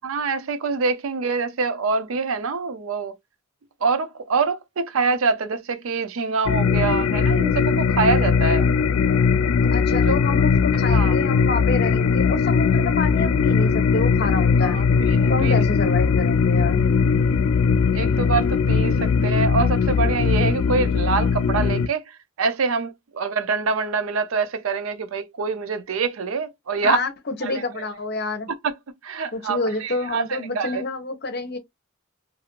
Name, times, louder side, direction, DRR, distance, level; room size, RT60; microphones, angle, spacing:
voice 1, 0.0-3.1 3.8-8.7 9.9-10.1 10.9-11.2 14.6-14.9 15.1-15.6 17.9-27.0 27.4-27.9 28.5-28.7 29.0-30.8, right 4 dB, 85° right, 0.5 m, -25 dB
sound 1, 6.5-21.9, left 5 dB, 85° left, 0.3 m, -19 dB
voice 2, 9.7-14.8 15.3-16.8 26.8-28.5 29.3-31.6, left 3 dB, 50° left, 0.7 m, -28 dB
2.6 x 2.4 x 2.9 m
head